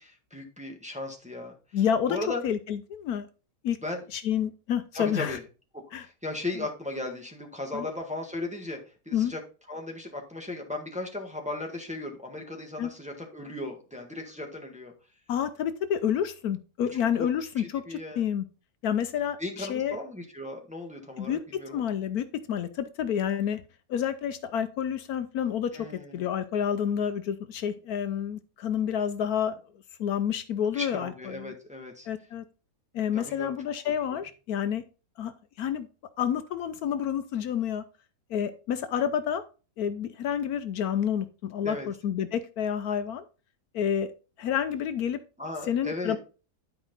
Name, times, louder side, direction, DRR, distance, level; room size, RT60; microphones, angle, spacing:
voice 1, 0.0-1.5 2.1-2.4 3.8-4.0 4.9-5.4 6.0-8.8 9.0-9.4 9.7-14.9 16.9-17.3 17.6-18.2 19.4-21.8 25.7-26.2 30.7-32.1 33.1-33.5 41.6-41.9 45.4-46.1, left 2 dB, 5° right, 1 dB, 1.5 m, -36 dB
voice 2, 1.7-2.2 2.4-3.3 3.6-3.8 4.1-5.4 5.9-6.1 7.7-7.8 9.1-9.3 12.8-12.9 15.3-18.4 18.8-20.0 21.2-21.4 21.7-23.6 23.9-25.7 26.1-29.6 30.0-31.5 32.1-32.4 32.9-34.8 35.2-35.3 35.6-35.9 36.2-37.8 38.3-39.4 39.8-43.2 43.7-44.1 44.4-45.2 45.7-46.2, left 9 dB, 75° left, 11 dB, 1.1 m, -29 dB
11.0 x 4.9 x 3.9 m, 0.34 s
omnidirectional pair, 1.7 m